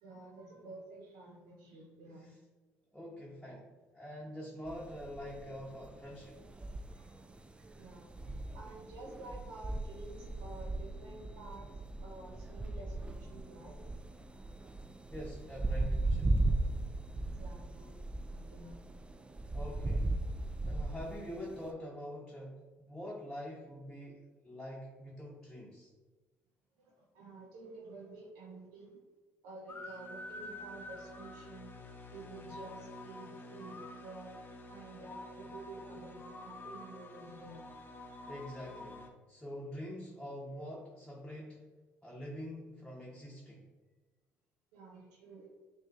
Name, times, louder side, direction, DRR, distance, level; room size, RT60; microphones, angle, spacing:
voice 1, 0.0-2.3 6.9-7.2 7.6-11.7 12.0-13.8 14.4-14.5 17.1-18.0 18.3-18.8 26.8-29.0 29.4-31.7 32.1-34.3 34.7-37.7 44.7-45.5, right 2 dB, 85° right, -1 dB, 0.7 m, -51 dB
voice 2, 2.9-6.4 15.1-16.3 19.5-20.2 20.6-25.9 38.3-41.6 42.0-43.7, equal, 5° left, -5 dB, 1.0 m, -45 dB
sound 1, 4.7-21.7, right 2 dB, 15° right, 0.3 m, -37 dB
sound 2, 29.7-39.1, left 2 dB, 35° left, 0.7 m, -48 dB
6.1 x 2.5 x 2.5 m, 1.3 s
supercardioid pair, 65°, 6 cm